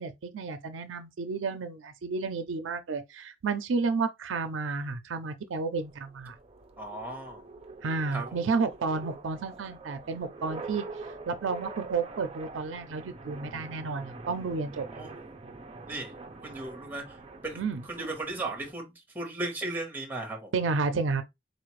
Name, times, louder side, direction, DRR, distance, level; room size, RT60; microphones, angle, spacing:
voice 1, 0.0-6.3 7.8-10.8 11.3-14.8 17.6-17.8 20.5-21.2, right 4 dB, 90° right, 0.5 m, -31 dB
sound 1, 5.7-18.7, right 3 dB, 30° right, 0.5 m, -45 dB
voice 2, 6.8-7.5 8.1-8.4 14.9-15.1 15.9-16.1 16.4-17.6 17.8-20.5, right 2 dB, 10° right, 1.1 m, -36 dB
4.1 x 2.5 x 3.1 m
head